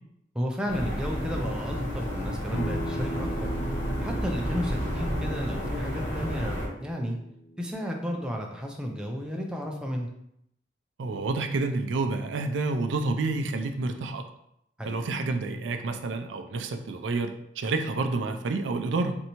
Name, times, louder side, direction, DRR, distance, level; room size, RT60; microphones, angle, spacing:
voice 1, 0.3-3.5 4.0-7.2 7.6-10.1 14.8-15.0, equal, 5° right, 0 dB, 0.4 m, -33 dB
sound 1, 0.7-6.7, equal, 20° left, 1.2 m, -31 dB
Acoustic guitar, 2.5-7.7, equal, 85° left, 0.4 m, -39 dB
voice 2, 11.0-14.2 14.8-19.2, right 3 dB, 80° right, 6 dB, 0.4 m, -29 dB
4.4 x 2.6 x 2.9 m, 0.76 s
head